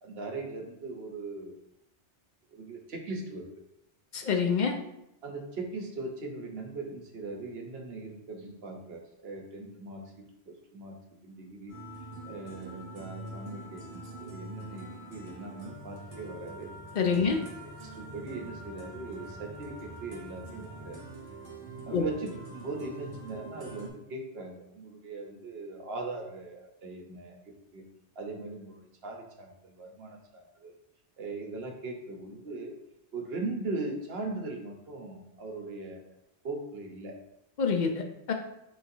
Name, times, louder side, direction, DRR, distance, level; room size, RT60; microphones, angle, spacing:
voice 1, 0.0-1.6 2.5-3.5 5.2-11.0 11.2-11.7 12.2-16.7 17.2-17.3 17.8-21.0 21.9-27.8 28.2-30.7 31.2-32.7 33.1-36.0 36.4-37.2, right 3 dB, 65° right, 2 dB, 1.0 m, -39 dB
voice 2, 4.1-4.8 16.9-17.4 21.9-22.0 37.6-38.3, left 5 dB, 55° left, 4 dB, 0.6 m, -26 dB
sound 1, 11.7-23.9, right 2 dB, 35° right, 1.1 m, -45 dB
4.6 x 4.1 x 2.6 m, 0.81 s
omnidirectional pair, 1.2 m